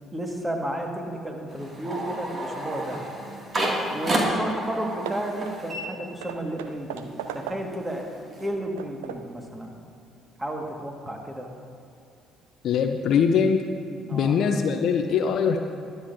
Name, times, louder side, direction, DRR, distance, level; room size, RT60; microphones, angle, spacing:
voice 1, 0.1-3.0 3.9-8.2 8.4-9.8 10.4-11.5 14.1-14.4, right 1 dB, 15° right, 2 dB, 1.9 m, -32 dB
sound 1, 1.5-6.6 6.9-8.5, right 1 dB, 35° right, 2.4 m, -31 dB
Hammer / Wood, 4.5-4.7 5.1-7.9 8.4-9.4, right 8 dB, 70° right, 0.4 m, -39 dB
voice 2, 12.6-13.6 14.1-15.6, left 6 dB, 55° left, 6 dB, 0.6 m, -22 dB
22.5 x 8.0 x 2.7 m, 2.6 s
figure-of-eight pair, 45°, 0 cm